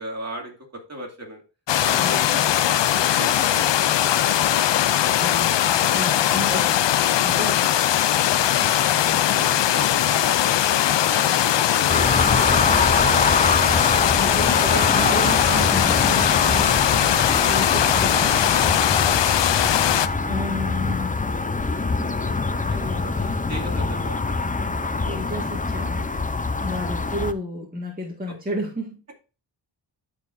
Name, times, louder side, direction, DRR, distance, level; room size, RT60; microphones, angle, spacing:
voice 1, 0.0-1.4 1.8-2.4 2.7-5.5 5.8-5.9 8.3-8.4 9.3-12.4 12.6-13.7 14.7-15.2 15.4-16.2 16.5-16.9 19.1-20.1 22.5-25.4 26.7-27.0, right 1 dB, 35° right, 0 dB, 2.6 m, -38 dB
sound 1, 1.7-20.1, left 11 dB, 70° left, 0.5 m, -20 dB
voice 2, 1.9-2.5 5.2-7.7 14.1-16.7 17.4-18.4 20.2-21.3 22.0-23.1 25.0-26.1 26.6-28.9, left 1 dB, 20° right, -2 dB, 1.9 m, -32 dB
sound 2, 11.9-27.3, left 3 dB, 20° left, 0.6 m, -24 dB
13.5 x 4.8 x 2.6 m, 0.34 s
wide cardioid pair, 90°, 45 cm